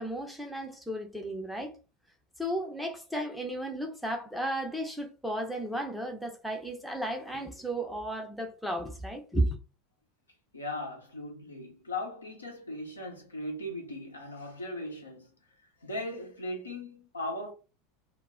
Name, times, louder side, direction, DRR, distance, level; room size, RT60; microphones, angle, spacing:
voice 1, 0.0-1.7 2.4-9.6, right 1 dB, ahead, 0.6 m, -34 dB
voice 2, 10.5-15.3 15.8-17.5, left 1 dB, 80° left, 0.7 m, -38 dB
2.1 x 2.1 x 3.6 m
figure-of-eight pair, 80°, 0 cm